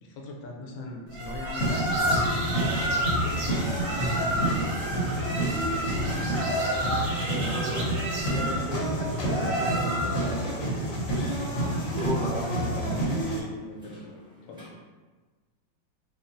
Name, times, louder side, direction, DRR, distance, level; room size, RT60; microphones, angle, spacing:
voice 1, 0.0-2.5 2.7-4.8 5.9-6.4 7.2-7.9 12.5-14.2 14.5-14.7, left 1 dB, 85° left, 0 dB, 1.4 m, -41 dB
sound 1, 1.1-10.4, right 1 dB, 90° right, 1.7 m, -31 dB
sound 2, 1.6-13.4, right 1 dB, 60° left, 0.9 m, -28 dB
sound 3, 3.8-14.7, equal, 5° right, 0.4 m, -45 dB
voice 2, 7.4-7.9 8.3-11.0 11.5-12.9, right 1 dB, 65° right, -10 dB, 0.4 m, -35 dB
5.1 x 2.3 x 2.6 m, 1.3 s
omnidirectional pair, 2.1 m